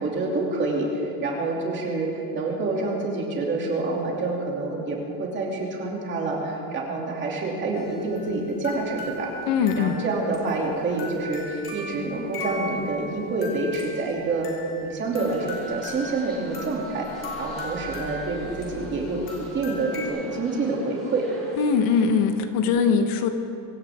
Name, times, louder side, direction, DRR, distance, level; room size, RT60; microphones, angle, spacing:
voice 1, 0.0-9.3 9.8-14.5 14.8-21.3, right 3 dB, 25° right, -2 dB, 2.8 m, -27 dB
sound 1, 7.7-20.1, left 2 dB, 30° left, 3.3 m, -38 dB
voice 2, 9.5-10.0 21.6-23.3, left 6 dB, 55° left, 7 dB, 1.2 m, -21 dB
sound 2, 15.1-22.3, right 1 dB, ahead, 5.2 m, -46 dB
25.0 x 16.0 x 3.6 m, 2.7 s
cardioid pair, 175°, 41 cm